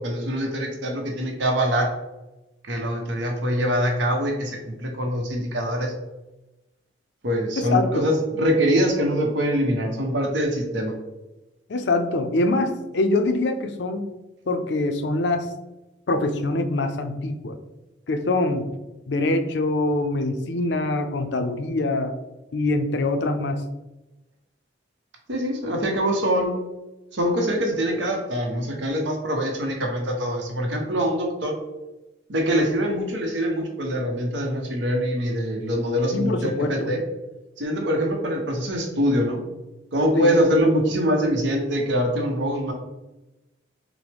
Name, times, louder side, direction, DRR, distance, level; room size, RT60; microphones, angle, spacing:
voice 1, 0.0-1.9 2.7-5.9 7.2-10.9 25.3-26.5 27.1-31.5 32.3-37.0 37.6-39.4 39.9-42.7, equal, 80° right, 1 dB, 0.8 m, -24 dB
voice 2, 7.6-8.0 11.7-14.1 14.5-15.5 16.1-17.6 18.1-18.7 19.1-22.1 22.5-23.6 36.1-36.9 40.1-40.4, left 2 dB, 70° left, 7 dB, 0.5 m, -24 dB
5.9 x 2.1 x 3.4 m, 1.0 s
head